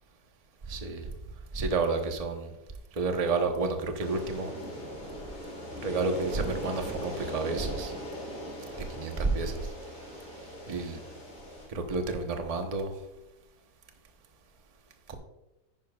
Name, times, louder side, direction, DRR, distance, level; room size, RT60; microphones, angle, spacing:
voice 1, 0.7-1.1 1.5-2.5 3.0-4.5 5.8-7.9 8.9-9.6 10.7-11.0 11.7-12.9 15.1-15.2, right 3 dB, 30° right, 5 dB, 0.7 m, -30 dB
sound 1, 4.0-11.7, equal, 60° left, 4.1 m, -40 dB
10.0 x 9.9 x 2.3 m, 1.0 s
omnidirectional pair, 1.9 m